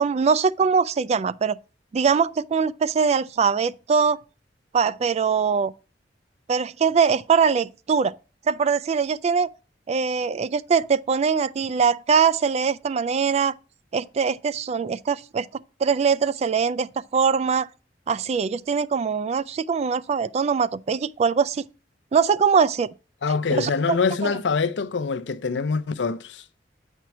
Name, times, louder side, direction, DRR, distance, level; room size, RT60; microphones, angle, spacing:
voice 1, 0.0-1.6 1.9-4.2 4.7-5.7 6.5-8.1 8.5-9.5 9.9-13.6 13.9-17.7 18.1-21.6 22.1-22.9 23.5-24.0 24.2-24.4, right 6 dB, 35° right, 0.3 m, -22 dB
voice 2, 23.2-26.4, left 4 dB, 80° left, 0.6 m, -24 dB
8.2 x 4.5 x 5.8 m
head